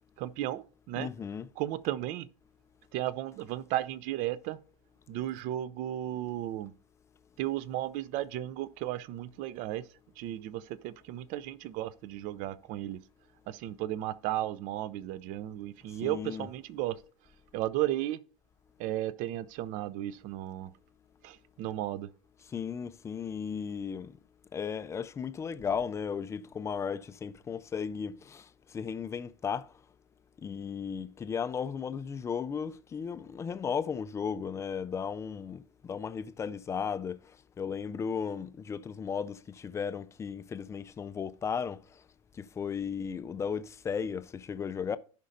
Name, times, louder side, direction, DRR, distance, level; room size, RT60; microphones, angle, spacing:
voice 1, 0.2-1.1 1.6-2.3 2.9-4.6 5.1-6.7 7.4-9.9 10.2-13.0 13.5-17.0 17.5-18.2 18.8-20.7 21.2-22.1, right 13 dB, 50° right, 0.5 m, -34 dB
voice 2, 0.9-1.5 15.9-16.5 22.4-24.2 24.5-29.8 30.4-42.0 42.3-45.0, left 6 dB, 15° left, 0.4 m, -35 dB
15.5 x 5.2 x 2.6 m
supercardioid pair, 130°, 17 cm